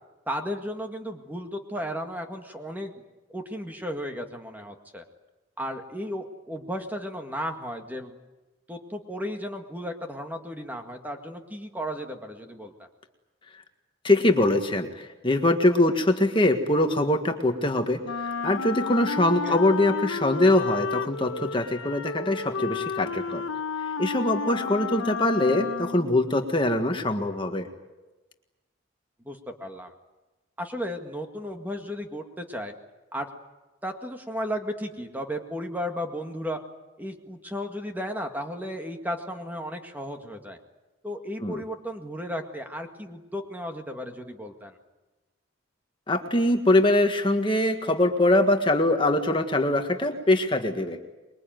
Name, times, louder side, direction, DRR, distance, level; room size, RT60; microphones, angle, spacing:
voice 1, 0.3-2.9 3.3-5.0 5.6-8.2 8.7-12.9 19.4-19.6 29.3-29.9 30.6-32.7 33.1-33.3 33.8-36.6 37.0-40.6 41.0-44.8, equal, 10° right, 4 dB, 1.9 m, -34 dB
voice 2, 14.0-18.0 18.4-23.4 24.0-27.7 41.4-41.6 46.1-51.0, left 1 dB, 25° left, 5 dB, 1.7 m, -23 dB
Wind instrument woodwind instrument, 18.0-26.2, left 5 dB, 90° left, 1.1 m, -32 dB
25.5 x 22.5 x 9.2 m, 1.1 s
head